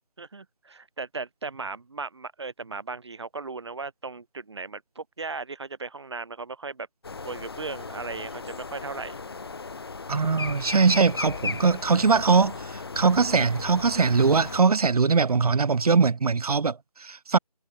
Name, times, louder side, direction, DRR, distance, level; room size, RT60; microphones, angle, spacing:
voice 1, 0.2-6.9 7.2-9.2, right 4 dB, 45° right, 1.4 m, -37 dB
sound 1, 7.0-14.6, left 4 dB, 40° left, 1.4 m, -36 dB
Yell / Screaming, 7.3-12.2, left 34 dB, 10° left, 6.4 m, -63 dB
voice 2, 10.1-12.6 13.0-17.4, right 4 dB, 70° right, 0.5 m, -21 dB
figure-of-eight pair, 170°, 20 cm